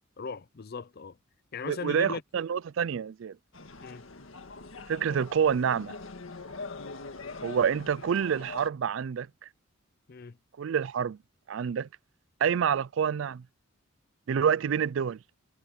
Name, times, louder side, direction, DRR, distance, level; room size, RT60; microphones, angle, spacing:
voice 1, 0.2-1.2 1.5-2.2 3.8-4.1 10.1-10.4, left 5 dB, 50° left, 0.5 m, -38 dB
voice 2, 1.7-3.4 4.9-5.9 7.4-9.3 10.6-11.2 11.5-11.9 12.4-13.4 14.3-15.2, right 7 dB, 65° right, 0.4 m, -27 dB
sound 1, 3.5-8.7, left 3 dB, 75° left, 1.8 m, -43 dB
head